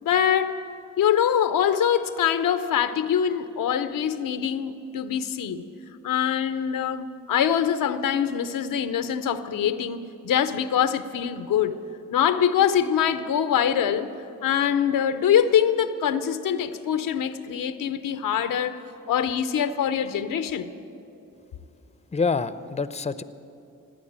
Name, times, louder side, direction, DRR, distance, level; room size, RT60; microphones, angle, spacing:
voice 1, 0.0-0.6 1.0-5.6 6.0-11.8 12.1-14.1 14.4-18.8 19.1-20.7, left 9 dB, 85° left, 12 dB, 0.7 m, -24 dB
voice 2, 22.1-23.2, left 4 dB, 20° left, 15 dB, 0.6 m, -26 dB
16.5 x 9.4 x 8.8 m, 2.7 s
cardioid pair, 45°, 32 cm